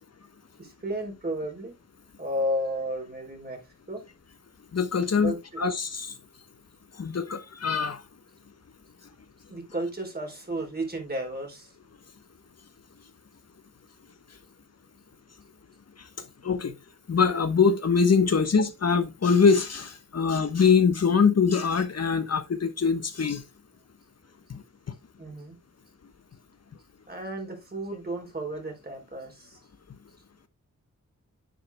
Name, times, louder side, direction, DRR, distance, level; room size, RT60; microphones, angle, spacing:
voice 1, 0.6-1.7 2.2-3.6 3.9-4.0 5.2-5.7 9.5-11.7 25.2-25.6 27.1-29.6, equal, 30° right, 3.8 m, -33 dB
voice 2, 4.7-6.1 7.0-8.0 16.4-16.7 17.1-23.4 24.5-24.6, left 5 dB, 55° left, 1.1 m, -23 dB
10.5 x 7.5 x 2.2 m
wide cardioid pair, 85°, 31 cm